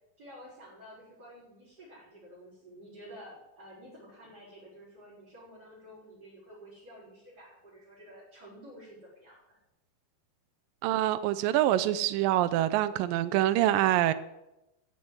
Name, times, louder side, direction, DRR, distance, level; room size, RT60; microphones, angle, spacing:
voice 1, 0.2-9.4, equal, 25° right, -9 dB, 6.0 m, -51 dB
voice 2, 10.8-14.1, right 13 dB, 80° right, 12 dB, 2.1 m, -25 dB
15.0 x 7.8 x 9.6 m, 0.94 s
omnidirectional pair, 4.5 m